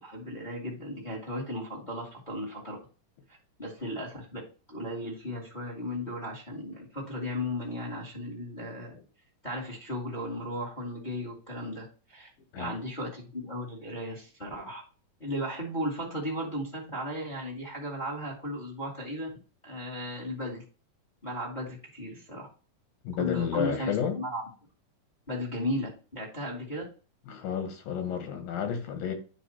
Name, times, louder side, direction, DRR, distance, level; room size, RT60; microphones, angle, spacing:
voice 1, 0.0-2.8 3.6-4.4 4.7-9.0 9.4-12.3 12.5-14.8 15.2-19.3 19.6-20.6 21.2-22.5 23.2-24.4 25.3-26.8, equal, 15° left, 1.6 m, -35 dB
voice 2, 23.0-24.2 27.3-29.1, left 8 dB, 90° left, 3.1 m, -31 dB
9.3 x 3.4 x 4.3 m
omnidirectional pair, 3.9 m